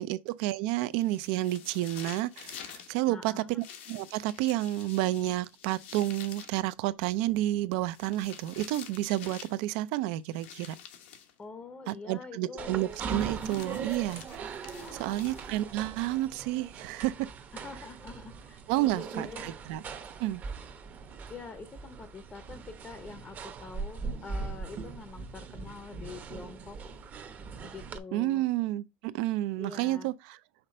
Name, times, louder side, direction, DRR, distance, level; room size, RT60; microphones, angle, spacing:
voice 1, 0.0-10.8 11.9-17.3 18.7-19.8 20.2-20.4 28.1-30.4, right 16 dB, 70° right, 0.5 m, -30 dB
sound 1, 1.0-2.9 3.6-6.6 7.8-9.6 10.3-11.3 12.9-15.7, left 8 dB, 85° left, 1.2 m, -48 dB
voice 2, 3.1-3.6 11.4-12.8 14.8-15.4 17.5-19.6 21.3-26.8 27.6-28.4 29.6-30.1, left 4 dB, 20° left, 0.7 m, -45 dB
sound 2, 12.6-28.0, right 5 dB, 30° right, 0.8 m, -40 dB
5.8 x 3.3 x 5.1 m
supercardioid pair, 135°, 6 cm